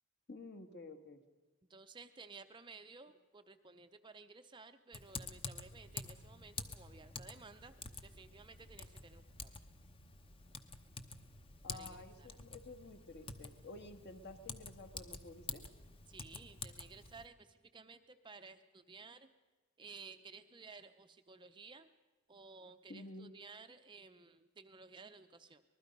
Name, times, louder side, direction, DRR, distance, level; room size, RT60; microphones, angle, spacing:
voice 1, 0.3-1.2 11.6-15.6 22.9-23.3, left 2 dB, 50° left, 7 dB, 1.5 m, -51 dB
voice 2, 1.7-7.7 8.0-9.5 11.7-12.3 16.1-19.3 19.8-21.9 22.3-25.6, right 4 dB, 20° right, 8 dB, 0.6 m, -55 dB
Typing, 4.9-17.3, left 4 dB, 25° left, 0.9 m, -49 dB
25.0 x 20.0 x 5.3 m, 1.2 s
head